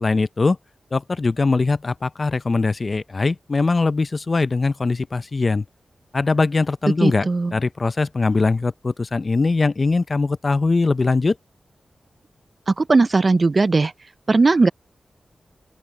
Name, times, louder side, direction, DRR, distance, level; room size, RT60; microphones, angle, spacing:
voice 1, 0.0-0.6 0.9-5.6 6.1-11.4, left 3 dB, 50° left, 0.5 m, -21 dB
voice 2, 7.0-7.5 12.7-13.9 14.3-14.7, right 3 dB, 50° right, 0.4 m, -17 dB
open air
cardioid pair, 45°, 0 cm